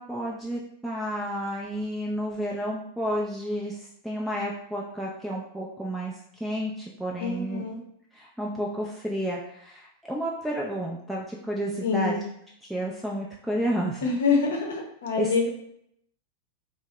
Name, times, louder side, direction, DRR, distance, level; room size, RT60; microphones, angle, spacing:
voice 1, 0.0-3.8 4.0-7.7 8.1-12.2 12.6-14.1 15.2-15.5, equal, 5° right, -3 dB, 0.4 m, -31 dB
voice 2, 7.2-7.8 11.8-12.2 14.0-15.5, left 4 dB, 60° left, 0 dB, 0.7 m, -26 dB
2.6 x 2.0 x 3.2 m, 0.72 s
figure-of-eight pair, 90°, 0 cm